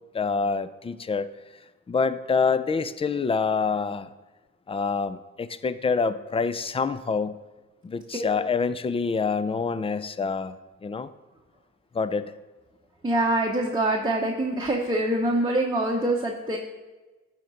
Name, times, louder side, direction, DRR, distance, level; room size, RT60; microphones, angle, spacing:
voice 1, 0.1-1.3 1.9-4.1 4.7-7.4 7.8-10.5 10.8-11.1 11.9-12.3, left 5 dB, 20° left, 13 dB, 0.4 m, -26 dB
voice 2, 13.0-16.6, right 1 dB, 15° right, -2 dB, 0.9 m, -25 dB
13.0 x 4.5 x 4.0 m, 1.2 s
cardioid pair, 90°, 30 cm